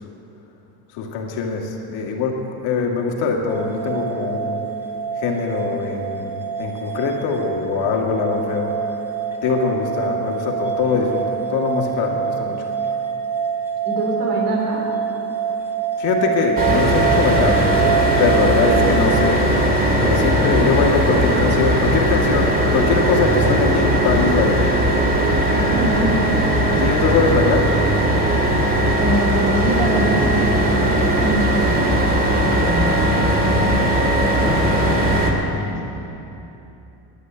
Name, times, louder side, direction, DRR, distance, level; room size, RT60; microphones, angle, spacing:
voice 1, 0.9-4.7 5.2-8.8 9.4-12.7 16.0-17.7 18.2-19.5 20.0-24.7 26.8-27.8, left 4 dB, 85° left, 1 dB, 2.2 m, -22 dB
sound 1, 3.5-19.1, right 7 dB, 5° right, 2.1 m, -25 dB
voice 2, 13.8-14.8 25.4-26.3 29.0-33.8 34.4-35.2 35.6-35.8, right 1 dB, 75° right, -1 dB, 4.2 m, -25 dB
sound 2, 16.6-35.3, right 1 dB, 20° right, 2.0 m, -18 dB
11.5 x 9.8 x 9.5 m, 3.0 s
cardioid pair, 140°, 41 cm